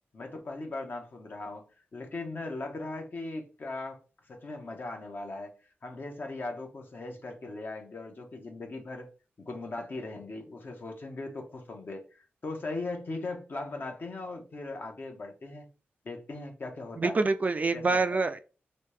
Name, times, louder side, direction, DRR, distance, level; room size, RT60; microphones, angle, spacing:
voice 1, 0.1-4.0 4.3-5.5 5.8-9.1 9.4-15.7 16.0-17.2 17.7-18.2, left 2 dB, 50° left, 1.0 m, -39 dB
voice 2, 17.0-18.4, right 3 dB, 35° right, 0.3 m, -26 dB
3.1 x 2.7 x 3.3 m
wide cardioid pair, 90°, 4 cm